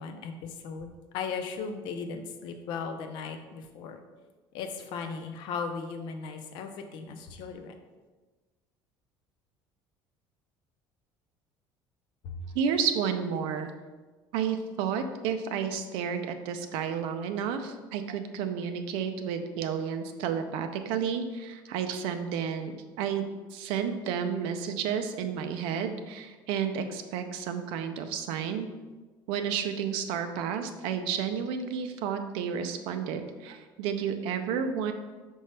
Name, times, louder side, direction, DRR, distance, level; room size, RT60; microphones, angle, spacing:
voice 1, 0.0-4.0 4.5-7.7 12.2-12.4, left 5 dB, 65° left, 6 dB, 0.7 m, -37 dB
voice 2, 12.5-13.7 14.3-28.7 29.3-34.9, right 7 dB, 80° right, 8 dB, 0.6 m, -31 dB
5.4 x 5.3 x 3.3 m, 1.3 s
cardioid pair, 160°, 9 cm